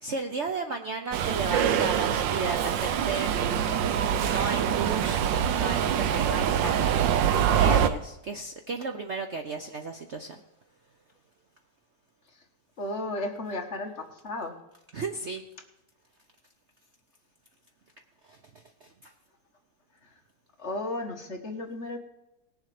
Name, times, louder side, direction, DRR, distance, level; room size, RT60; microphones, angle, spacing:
voice 1, 0.0-3.3 4.2-7.0 7.5-10.4 14.9-15.4 18.3-18.4 18.8-19.1, right 4 dB, 55° right, 5 dB, 0.8 m, -34 dB
Subway metro underground, 1.1-7.9, right 9 dB, 80° right, 1.4 m, -25 dB
voice 2, 12.8-14.5 20.6-22.0, left 2 dB, 40° left, 3 dB, 1.5 m, -34 dB
19.0 x 7.2 x 5.0 m, 0.94 s
omnidirectional pair, 2.0 m